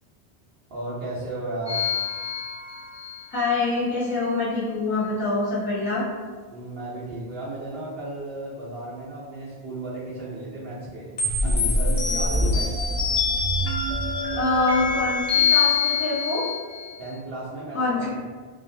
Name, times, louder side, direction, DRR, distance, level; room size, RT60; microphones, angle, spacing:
voice 1, 0.7-1.8 6.5-11.1 11.4-12.7 17.0-18.2, right 2 dB, 65° right, -9 dB, 0.8 m, -34 dB
sound 1, 1.7-3.2 11.2-16.9, left 3 dB, 50° left, 0.5 m, -24 dB
voice 2, 3.3-6.0 14.3-16.4 17.7-18.2, left 3 dB, 10° left, -10 dB, 0.8 m, -25 dB
2.4 x 2.0 x 2.6 m, 1.5 s
omnidirectional pair, 1.1 m